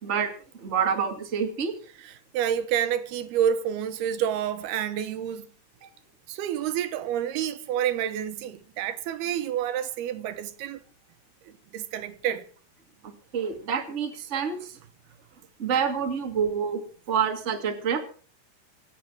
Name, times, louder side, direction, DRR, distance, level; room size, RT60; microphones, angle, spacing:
voice 1, 0.0-1.7 5.8-5.9 13.0-14.8 15.6-16.8 17.1-18.0, right 7 dB, 25° right, 1.8 m, -27 dB
voice 2, 2.0-5.5 6.3-10.8 11.7-12.5, right 9 dB, 80° right, 3.0 m, -28 dB
27.0 x 9.4 x 4.6 m
omnidirectional pair, 4.5 m